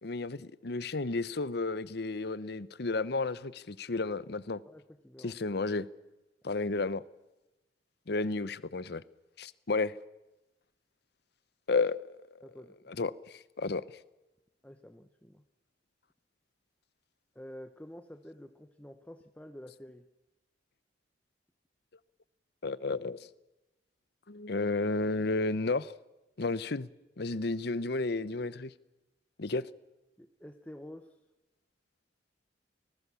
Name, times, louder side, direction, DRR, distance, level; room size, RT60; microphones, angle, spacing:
voice 1, 0.0-4.6 5.2-5.9 6.4-7.0 8.1-9.0 9.4-10.0 11.7-12.1 12.9-13.9 22.6-23.3 24.3-25.9 26.4-26.9 27.2-28.7 29.4-29.7, left 3 dB, 60° left, 0.8 m, -32 dB
voice 2, 4.7-5.4 12.4-12.9 14.6-15.4 17.3-20.0 30.2-31.1, left 1 dB, 10° left, 0.9 m, -49 dB
26.0 x 19.0 x 7.0 m
head